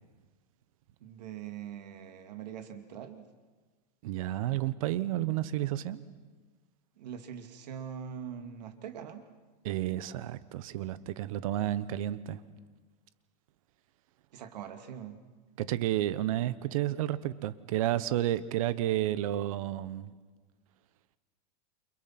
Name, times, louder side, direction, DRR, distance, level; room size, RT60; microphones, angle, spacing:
voice 1, 1.0-3.2 7.0-9.2 14.3-15.2, right 8 dB, 75° right, 6 dB, 2.7 m, -42 dB
voice 2, 4.0-6.0 9.6-12.4 15.6-20.1, right 13 dB, 55° right, 15 dB, 1.2 m, -31 dB
29.5 x 28.0 x 6.1 m, 1.4 s
supercardioid pair, 165°, 21 cm